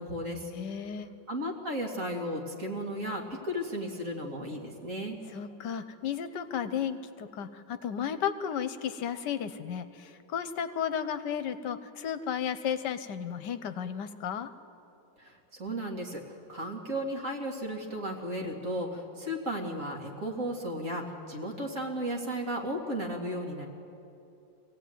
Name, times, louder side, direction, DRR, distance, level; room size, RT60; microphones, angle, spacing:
voice 1, 0.0-0.5 1.3-5.2 15.2-16.2 16.5-23.7, equal, 45° right, 0 dB, 2.7 m, -34 dB
voice 2, 0.5-1.1 5.3-14.5, left 8 dB, 75° left, 11 dB, 1.4 m, -34 dB
24.0 x 16.5 x 9.3 m, 2.8 s
omnidirectional pair, 1.9 m